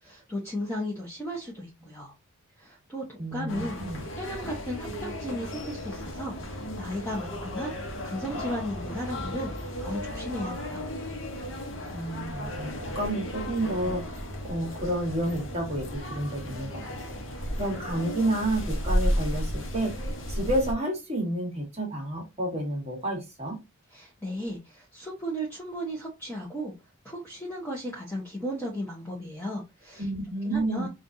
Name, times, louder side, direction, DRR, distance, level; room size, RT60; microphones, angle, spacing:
voice 1, 0.0-2.1 2.6-3.8 4.2-7.7 8.0-10.8 23.9-26.7 27.0-30.1 30.5-30.9, equal, 10° left, -3 dB, 0.8 m, -35 dB
voice 2, 3.2-4.0 11.9-17.1 17.6-23.6 30.0-30.9, right 1 dB, 30° right, 1 dB, 1.3 m, -30 dB
sound 1, 3.5-20.7, equal, 55° left, 0.9 m, -34 dB
5.1 x 2.4 x 2.7 m, 0.24 s
head